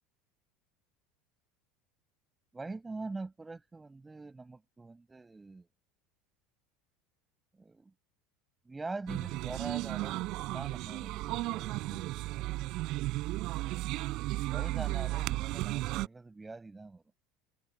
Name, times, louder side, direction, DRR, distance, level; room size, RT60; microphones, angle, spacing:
voice 1, 2.5-5.7 7.5-7.9 8.7-12.5 14.5-17.0, right 3 dB, 10° right, 7.0 m, -44 dB
sound 1, 9.1-16.1, right 19 dB, 45° right, 4.2 m, -34 dB
cardioid pair, 170°, 0 cm